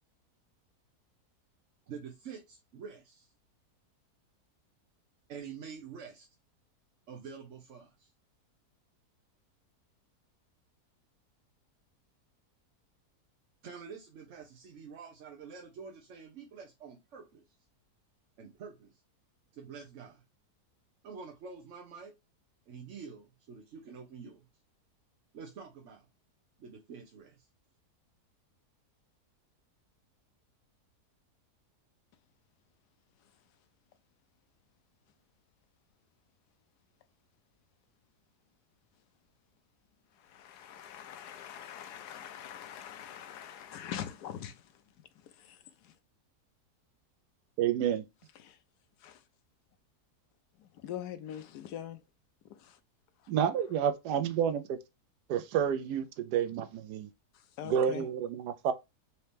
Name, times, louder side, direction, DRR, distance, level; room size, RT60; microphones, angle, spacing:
voice 1, 1.9-3.3 5.3-6.3 7.1-8.1 13.6-17.4 18.4-19.0 19.5-20.2 21.0-22.1 22.7-24.5 25.3-26.1 26.6-27.5, right 6 dB, 60° right, 0.9 m, -47 dB
voice 2, 40.3-44.5 49.0-49.2 50.8-52.0 57.6-58.0, left 10 dB, 90° left, 1.2 m, -42 dB
voice 3, 47.6-48.0 53.3-54.8 55.3-57.1 57.6-58.7, right 8 dB, 90° right, 1.2 m, -29 dB
4.2 x 2.8 x 3.3 m
omnidirectional pair, 1.7 m